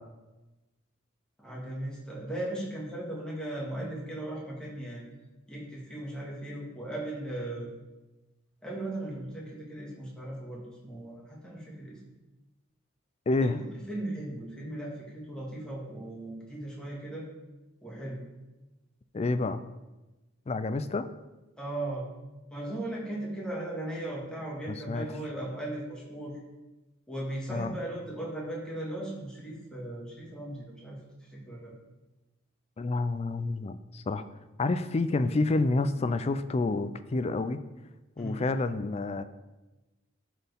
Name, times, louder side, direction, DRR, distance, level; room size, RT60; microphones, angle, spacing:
voice 1, 1.4-5.0 5.5-7.7 8.6-12.0 13.4-17.2 17.8-18.2 21.6-22.1 22.5-26.3 27.1-31.0 31.3-31.7 38.2-38.5, right 1 dB, 5° left, -5 dB, 1.9 m, -37 dB
voice 2, 13.3-13.6 19.1-19.6 20.5-21.1 24.9-25.1 27.5-27.7 32.8-34.2 34.6-37.6 38.2-39.2, left 3 dB, 30° left, 12 dB, 0.4 m, -28 dB
13.0 x 4.5 x 3.5 m, 1.1 s
head